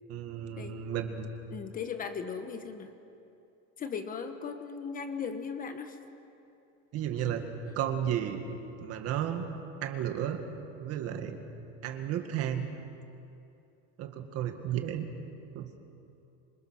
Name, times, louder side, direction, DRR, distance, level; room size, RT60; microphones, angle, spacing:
voice 1, 0.1-1.3 6.9-7.5 7.7-8.4 8.8-9.5 9.8-10.4 10.8-11.4 11.8-12.7 14.0-15.1 15.5-15.7, right 10 dB, 45° right, 6 dB, 2.0 m, -33 dB
voice 2, 1.5-2.9 3.8-6.0, left 6 dB, 25° left, 7 dB, 1.1 m, -37 dB
26.5 x 26.0 x 6.5 m, 2.7 s
cardioid pair, 170°, 35 cm